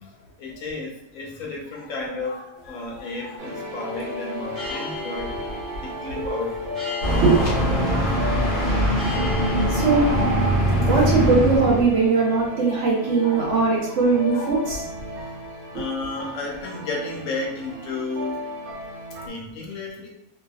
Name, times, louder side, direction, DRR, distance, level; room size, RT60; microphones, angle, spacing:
voice 1, 0.0-5.5 5.7-7.0 7.8-8.3 10.5-10.7 10.9-11.1 12.7-13.5 13.9-14.7 15.1-15.4 15.7-18.4 18.8-18.9 19.2-20.1, left 3 dB, 75° left, -2 dB, 1.1 m, -33 dB
sound 1, 2.5-11.7, equal, 20° right, 1.0 m, -39 dB
sound 2, 3.4-19.3, left 1 dB, 85° right, 1.1 m, -35 dB
sound 3, 7.0-12.0, equal, 45° left, 0.8 m, -22 dB
voice 2, 9.7-10.1 10.9-14.8 15.7-15.8, right 4 dB, 60° right, -3 dB, 1.0 m, -20 dB
2.7 x 2.4 x 2.3 m, 0.88 s
omnidirectional pair, 1.5 m